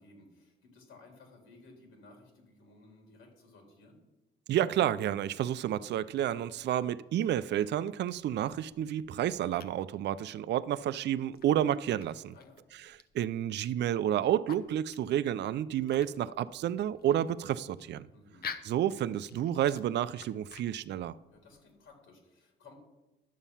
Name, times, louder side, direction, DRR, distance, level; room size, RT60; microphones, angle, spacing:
voice 1, 0.0-4.0 12.3-12.6 18.1-18.5 21.3-22.7, left 3 dB, 85° left, 3.5 m, -57 dB
voice 2, 4.5-12.3 12.7-18.1 18.6-21.2, right 11 dB, 60° right, 0.4 m, -30 dB
sound 1, 7.8-21.9, left 6 dB, 50° left, 0.8 m, -51 dB
11.0 x 7.2 x 5.6 m
cardioid pair, 90°, 20 cm